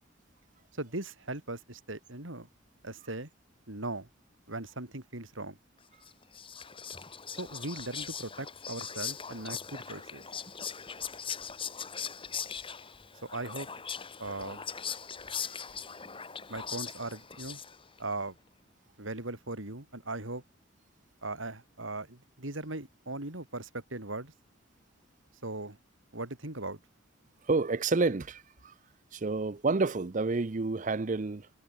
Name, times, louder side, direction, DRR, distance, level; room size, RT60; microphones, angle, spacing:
voice 1, 0.7-2.5 2.8-3.3 3.7-4.1 4.5-5.6 7.4-10.2 13.3-13.7 14.2-14.7 16.5-17.6 18.0-18.3 19.0-20.4 21.2-24.3 25.4-25.8 26.1-26.8, right 2 dB, 75° right, 4.0 m, -39 dB
Whispering, 6.0-18.0, left 7 dB, 25° left, 2.9 m, -40 dB
voice 2, 27.4-28.7 29.1-31.6, right 3 dB, 40° right, 0.6 m, -29 dB
head